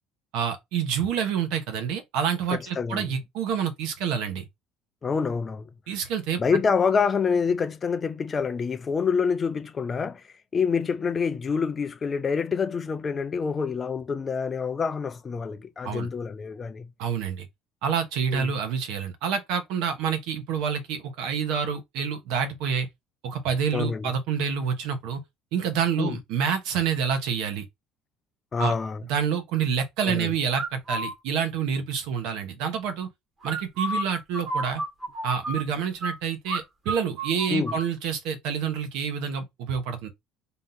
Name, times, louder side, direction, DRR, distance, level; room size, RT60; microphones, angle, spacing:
voice 1, 0.3-4.4 5.9-6.4 15.8-16.1 17.0-17.5 17.8-22.9 23.2-25.2 25.5-27.6 28.6-28.7 29.1-33.1 33.4-34.8 35.2-40.1, right 7 dB, 65° right, 1.1 m, -28 dB
voice 2, 2.5-3.1 5.0-5.7 6.4-10.2 10.5-16.9 18.3-18.5 23.7-24.2 26.0-26.2 28.5-29.0 30.0-30.3 37.5-37.8, left 5 dB, 20° left, 0.4 m, -27 dB
sound 1, 30.5-31.1 33.4-36.1 36.5-36.6 36.9-37.8, right 1 dB, 20° right, 1.0 m, -31 dB
3.7 x 2.7 x 3.8 m
cardioid pair, 170°, 0 cm